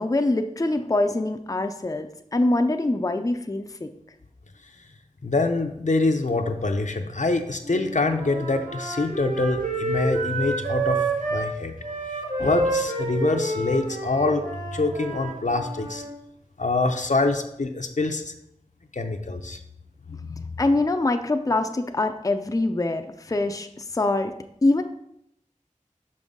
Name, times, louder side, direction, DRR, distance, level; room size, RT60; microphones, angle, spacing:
voice 1, 0.0-3.9 20.6-24.3 24.6-24.8, left 2 dB, 25° left, 7 dB, 0.4 m, -24 dB
voice 2, 5.2-11.7 12.4-14.4 14.7-16.0 16.6-18.3 18.9-19.6 20.1-20.6, left 3 dB, 70° left, 6 dB, 0.6 m, -25 dB
Wind instrument woodwind instrument, 7.6-11.5 11.8-16.1, right 2 dB, 80° right, 1.6 m, -29 dB
6.0 x 5.3 x 3.6 m, 0.77 s
wide cardioid pair, 40°, 13 cm